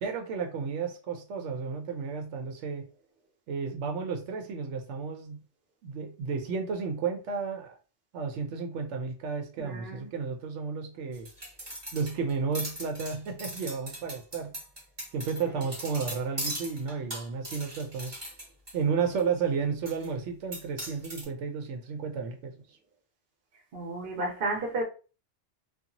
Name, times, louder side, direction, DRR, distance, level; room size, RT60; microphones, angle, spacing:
voice 1, 0.0-2.9 3.5-5.4 5.8-7.8 8.1-11.3 11.9-14.6 15.1-18.2 18.7-22.5, right 5 dB, 85° right, 0.9 m, -32 dB
voice 2, 9.6-10.1 23.7-24.8, right 2 dB, 55° right, 0.9 m, -32 dB
sound 1, 11.1-18.7 19.2-19.3 19.9-20.1 20.5-21.2, right 1 dB, 25° right, 0.8 m, -39 dB
2.8 x 2.4 x 2.5 m
omnidirectional pair, 1.2 m